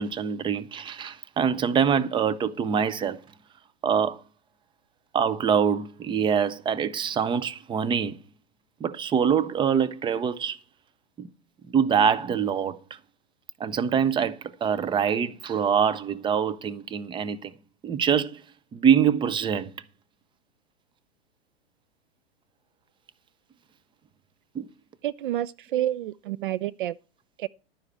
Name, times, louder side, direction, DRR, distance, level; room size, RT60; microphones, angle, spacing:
voice 1, 0.0-3.2 3.8-4.2 5.1-8.2 8.8-10.6 11.2-11.3 11.7-13.0 13.6-17.5 17.8-18.4 18.7-19.7 24.5-24.7, right 7 dB, 15° right, 0.7 m, -24 dB
voice 2, 25.0-27.0 27.4-27.5, right 13 dB, 55° right, 0.5 m, -29 dB
12.0 x 9.7 x 4.4 m
figure-of-eight pair, 105°, 31 cm